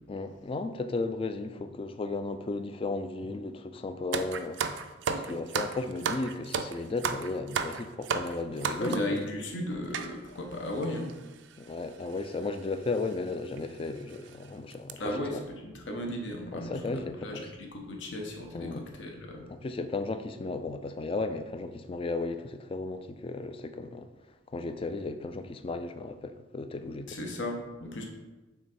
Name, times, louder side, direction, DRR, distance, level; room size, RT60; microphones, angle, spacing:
voice 1, 0.1-4.6 5.2-8.9 11.6-15.4 16.5-17.4 18.5-18.8 19.5-24.1 24.5-27.2, left 3 dB, 30° left, 0.3 m, -35 dB
sound 1, 4.1-9.2 9.9-10.1 10.8-10.9 11.1-11.3 12.3-12.5 12.9-13.0 13.6-13.7 14.1-14.3 14.7-14.9, right 6 dB, 70° right, 0.4 m, -33 dB
voice 2, 8.8-11.1 15.0-19.5 27.1-28.1, left 1 dB, 70° left, 1.0 m, -35 dB
5.7 x 3.7 x 4.3 m
head